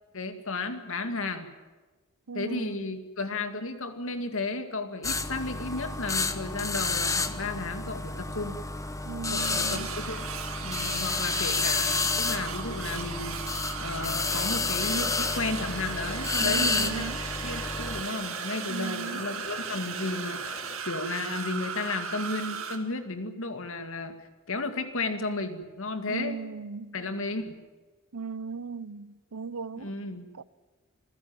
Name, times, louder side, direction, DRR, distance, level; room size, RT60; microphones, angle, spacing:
voice 1, 0.1-1.5 2.3-8.6 9.3-10.3 10.6-13.5 13.8-17.1 17.4-26.4 26.9-27.6 29.8-30.3, left 3 dB, 65° left, 2.2 m, -33 dB
voice 2, 2.3-2.9 9.0-9.9 16.4-17.2 18.7-19.2 26.1-27.0 28.1-29.9 30.4-30.5, right 5 dB, 80° right, 0.8 m, -37 dB
sound 1, 5.0-18.0, left 3 dB, 15° left, 1.0 m, -30 dB
sound 2, 9.4-22.8, right 7 dB, 65° right, 2.3 m, -37 dB
sound 3, 14.2-20.8, left 2 dB, 30° left, 3.1 m, -44 dB
27.0 x 16.0 x 8.8 m
head